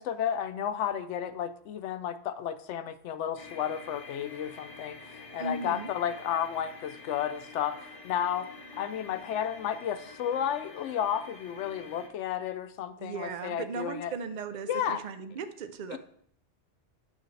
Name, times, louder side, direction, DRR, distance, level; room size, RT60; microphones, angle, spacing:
voice 1, 0.0-8.5 8.8-14.1 14.7-15.0 15.9-16.0, left 9 dB, 90° left, 10 dB, 0.9 m, -32 dB
sound 1, 3.4-12.1, left 3 dB, 35° left, 0.9 m, -48 dB
voice 2, 5.4-5.9 13.0-16.0, right 5 dB, 50° right, 9 dB, 0.6 m, -37 dB
9.1 x 6.8 x 3.2 m, 0.64 s
omnidirectional pair, 1.2 m